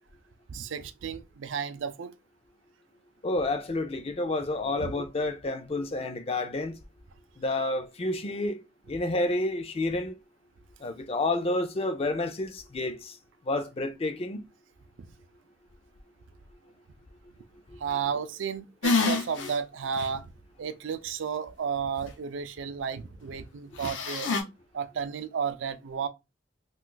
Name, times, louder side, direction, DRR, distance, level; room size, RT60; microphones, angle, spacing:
voice 1, 0.5-2.1 4.8-4.9 15.0-15.1 17.8-20.3 20.6-24.3 24.7-26.1, right 6 dB, 85° right, 0.4 m, -33 dB
voice 2, 3.2-6.7 7.4-8.6 8.9-10.2 10.8-13.2 13.5-14.5 17.7-17.8, left 2 dB, 30° left, 0.4 m, -30 dB
sound 1, 18.8-19.5 20.0-20.1 23.8-24.4, left 4 dB, 85° left, 0.7 m, -26 dB
2.5 x 2.3 x 3.8 m
head